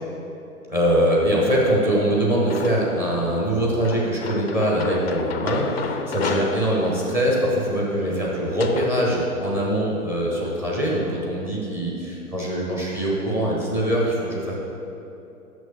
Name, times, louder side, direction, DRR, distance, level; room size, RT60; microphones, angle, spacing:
voice 1, 0.7-14.5, equal, 5° right, -4 dB, 0.7 m, -23 dB
sound 1, 2.5-3.1 3.8-8.9, left 6 dB, 45° left, 0.5 m, -33 dB
6.3 x 6.2 x 6.7 m, 2.8 s
figure-of-eight pair, 130°, 46 cm